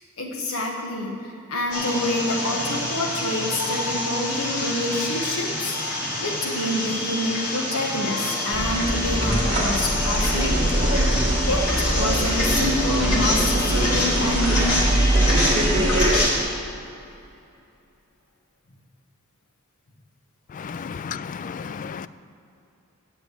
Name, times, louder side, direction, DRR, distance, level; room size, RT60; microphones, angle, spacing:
voice 1, 0.2-5.8 6.2-10.6 11.2-14.7, left 1 dB, 65° left, 1.4 m, -27 dB
sound 1, 1.7-16.4, left 1 dB, 85° left, 2.5 m, -27 dB
sound 2, 8.5-16.2, right 1 dB, 30° right, 1.8 m, -22 dB
voice 2, 20.6-22.1, left 6 dB, 35° left, 0.3 m, -33 dB
8.1 x 7.9 x 8.5 m
head